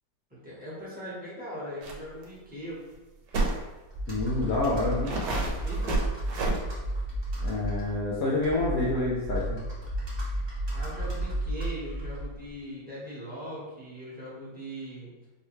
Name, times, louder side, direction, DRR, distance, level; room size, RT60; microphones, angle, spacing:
voice 1, 0.3-2.8 5.6-6.1 10.7-15.1, equal, 5° right, -9 dB, 0.8 m, -40 dB
sound 1, 1.8-2.0 2.2-2.3 3.3-3.6 4.4-4.5 5.1-6.6, right 2 dB, 75° right, 1.3 m, -29 dB
Computer keyboard, 3.9-12.5, right 1 dB, 40° right, 0.4 m, -33 dB
voice 2, 4.1-5.1 7.4-9.6, left 2 dB, 70° left, -4 dB, 0.9 m, -28 dB
4.6 x 2.2 x 3.1 m, 1.1 s
omnidirectional pair, 2.0 m